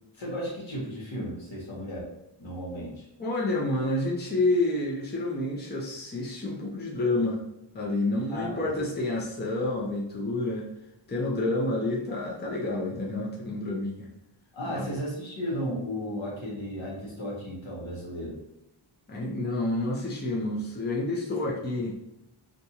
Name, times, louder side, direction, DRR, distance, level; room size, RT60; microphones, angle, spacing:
voice 1, 0.1-2.1 2.4-3.1 8.3-8.7 14.5-18.4 21.3-21.5, equal, 65° left, -4 dB, 1.3 m, -34 dB
voice 2, 3.2-7.4 7.7-10.7 11.1-14.1 14.7-14.9 19.1-21.9, left 2 dB, 20° left, -3 dB, 0.6 m, -29 dB
2.6 x 2.3 x 2.9 m, 0.88 s
cardioid pair, 50°, 50 cm